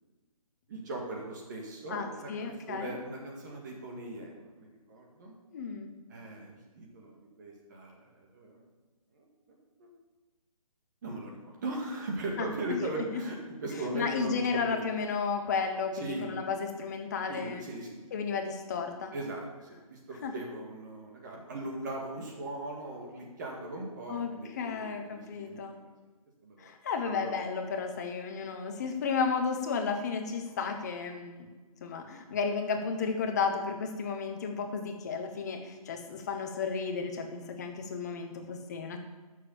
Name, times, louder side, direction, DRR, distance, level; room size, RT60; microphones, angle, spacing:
voice 1, 0.7-5.3 6.1-8.6 9.1-9.3 9.8-9.9 11.0-14.9 15.9-16.3 17.3-18.0 19.1-25.9 26.4-26.7 27.0-27.4 30.5-30.6, right 2 dB, 30° right, 0 dB, 1.9 m, -39 dB
voice 2, 1.9-2.9 5.5-5.9 12.4-12.8 13.1-13.2 13.9-17.6 18.1-19.1 20.2-20.3 24.1-25.8 26.6-31.5 31.8-39.0, left 5 dB, 30° left, 5 dB, 1.1 m, -33 dB
9.6 x 6.8 x 7.0 m, 1.3 s
hypercardioid pair, 165°, 19 cm